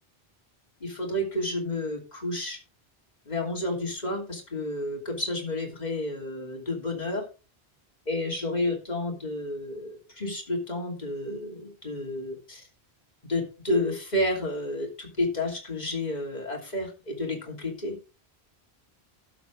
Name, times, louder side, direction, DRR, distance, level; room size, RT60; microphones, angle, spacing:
voice 1, 0.8-2.6 3.3-7.2 8.1-12.7 13.2-18.0, left 1 dB, 40° left, 0 dB, 2.9 m, -31 dB
12.0 x 7.7 x 3.8 m, 0.33 s
omnidirectional pair, 1.1 m